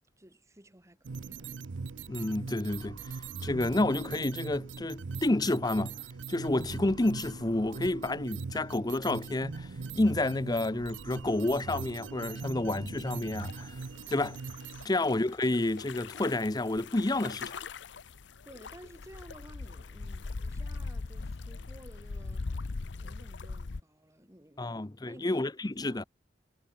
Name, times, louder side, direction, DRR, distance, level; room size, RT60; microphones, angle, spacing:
voice 1, 0.2-1.5 14.8-15.1 18.4-22.5 22.9-24.8 25.1-26.1, right 1 dB, 15° right, 2.8 m, -54 dB
sound 1, 1.0-14.9, right 4 dB, 80° right, 0.6 m, -41 dB
voice 2, 2.1-3.1 3.4-6.0 6.3-9.7 9.9-13.8 14.1-14.4 14.8-17.6 24.6-26.0, left 2 dB, 20° left, 0.7 m, -29 dB
sound 2, 13.4-23.8, left 3 dB, 70° left, 0.7 m, -41 dB
head